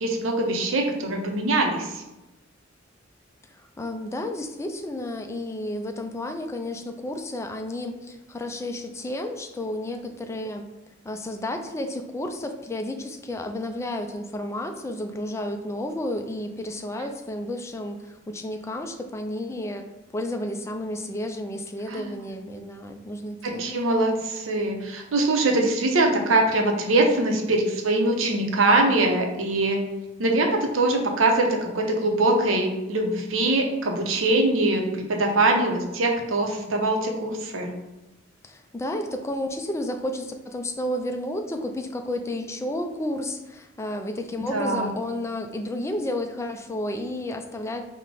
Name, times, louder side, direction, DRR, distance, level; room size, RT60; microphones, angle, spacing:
voice 1, 0.0-2.0 21.9-22.1 23.4-29.9 30.2-37.7 44.5-44.9, right 2 dB, 85° right, 2 dB, 0.7 m, -23 dB
voice 2, 3.5-10.7 11.0-23.9 38.4-47.8, left 1 dB, 15° left, 5 dB, 0.3 m, -32 dB
4.7 x 2.2 x 3.7 m, 0.98 s
head